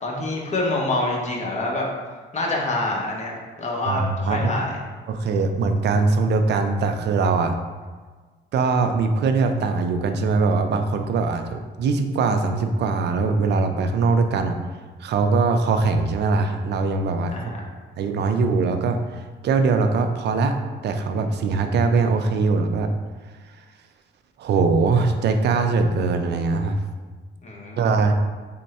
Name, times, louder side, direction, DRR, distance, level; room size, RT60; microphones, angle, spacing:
voice 1, 0.0-1.9 2.3-4.8 17.3-17.6 27.4-27.9, left 2 dB, 35° left, -2 dB, 0.9 m, -26 dB
voice 2, 3.9-4.5 5.1-7.6 8.5-14.6 15.0-17.3 18.0-20.6 20.8-22.9 24.4-26.8 27.8-28.1, right 4 dB, 60° right, 6 dB, 0.4 m, -21 dB
3.4 x 2.1 x 4.1 m, 1.4 s
cardioid pair, 90°, 20 cm